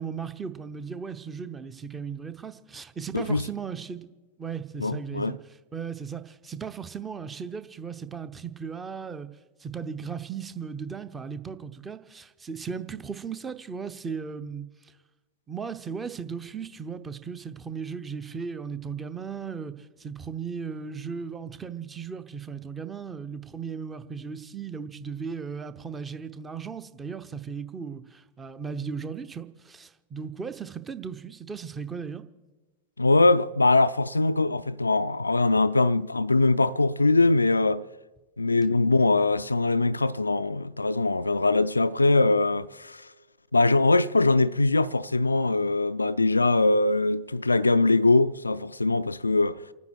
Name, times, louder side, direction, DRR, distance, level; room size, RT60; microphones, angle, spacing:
voice 1, 0.0-4.1 4.4-5.4 5.7-9.3 9.6-14.9 15.5-32.2, right 6 dB, 15° right, 0.9 m, -36 dB
voice 2, 3.1-3.5 4.8-5.4 33.0-37.9 38.4-43.1 43.5-49.6, left 2 dB, 80° left, 0.4 m, -22 dB
29.0 x 9.7 x 4.7 m
figure-of-eight pair, 90°, 0 cm